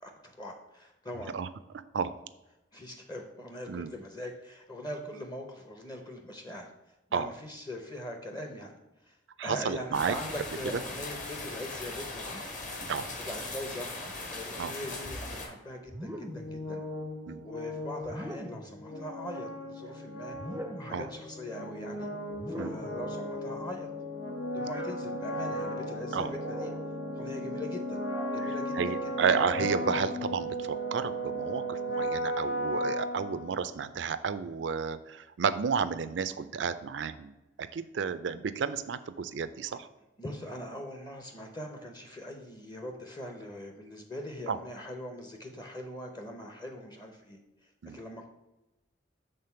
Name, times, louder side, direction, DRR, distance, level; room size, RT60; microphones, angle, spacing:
voice 1, 0.0-1.4 2.7-6.7 7.1-8.8 9.0-9.2 9.4-12.4 13.2-16.8 17.4-20.4 20.8-22.1 22.5-23.9 24.5-26.7 27.1-28.0 28.3-29.1 39.7-39.8 40.2-48.3, left 1 dB, 25° left, 4 dB, 0.7 m, -41 dB
voice 2, 9.4-10.1 10.6-10.8 12.9-13.1 14.6-14.7 17.3-17.4 20.9-21.1 22.6-22.8 26.1-26.3 28.8-37.3 37.6-39.9 44.5-44.6 47.8-48.0, right 6 dB, 70° right, 12 dB, 0.4 m, -31 dB
sound 1, 9.9-15.5, left 2 dB, 45° left, 1.4 m, -39 dB
sound 2, 15.9-16.6 18.0-18.8 20.3-21.1 22.3-23.1 24.6-25.0 26.4-26.9 28.0-28.4 29.5-30.2, equal, 10° right, 0.5 m, -41 dB
sound 3, 16.2-33.9, equal, 80° left, 1.6 m, -36 dB
6.7 x 3.7 x 5.6 m, 0.98 s
head